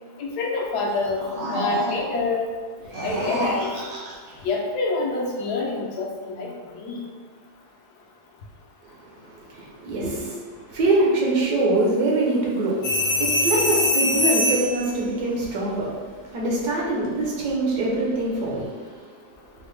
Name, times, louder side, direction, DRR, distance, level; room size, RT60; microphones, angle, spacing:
voice 1, 0.2-1.2 1.5-2.5 3.0-3.7 4.4-7.0, left 3 dB, 80° left, -1 dB, 1.2 m, -26 dB
sound 1, 0.9-2.2 2.8-4.4, right 1 dB, 55° right, 0.8 m, -31 dB
voice 2, 8.8-19.1, right 2 dB, 75° right, -4 dB, 1.4 m, -24 dB
sound 2, 12.8-14.8 17.2-17.5, left 2 dB, 55° left, 0.8 m, -22 dB
4.6 x 2.0 x 3.3 m, 1.5 s
omnidirectional pair, 1.7 m